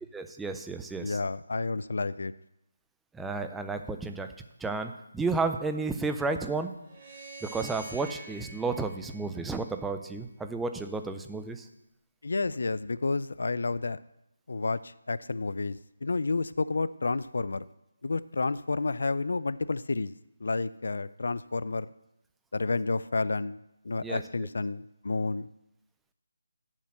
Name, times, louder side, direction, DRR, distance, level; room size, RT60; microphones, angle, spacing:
voice 1, 0.1-1.2 3.1-4.3 4.6-6.7 7.4-11.7 24.0-24.2, right 3 dB, 5° right, 7 dB, 0.4 m, -32 dB
voice 2, 1.0-2.3 12.2-14.0 14.5-17.6 18.0-20.1 20.4-21.9 22.5-23.6 23.8-25.5, left 3 dB, 65° left, 17 dB, 0.3 m, -30 dB
sound 1, 6.8-10.1, right 3 dB, 35° right, 3.4 m, -46 dB
7.2 x 5.7 x 7.5 m, 0.84 s
figure-of-eight pair, 160°, 0 cm